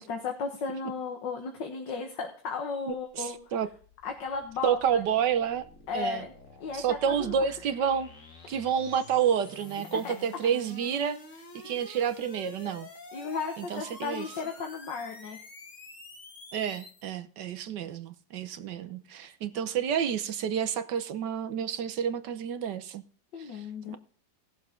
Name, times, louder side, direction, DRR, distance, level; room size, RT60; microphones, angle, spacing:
voice 1, 0.0-3.4 4.0-5.0 5.9-6.3 6.6-7.4 9.9-10.1 13.1-15.4 23.3-24.0, left 5 dB, 75° left, 2.1 m, -35 dB
sound 1, 2.9-17.0, left 3 dB, 45° left, 2.0 m, -49 dB
voice 2, 2.9-3.7 4.6-5.6 5.9-6.2 6.7-8.1 8.5-11.2 11.6-12.9 13.6-14.3 16.5-23.0 23.9-24.0, right 8 dB, 70° right, 1.5 m, -29 dB
18.5 x 7.0 x 3.7 m
omnidirectional pair, 2.0 m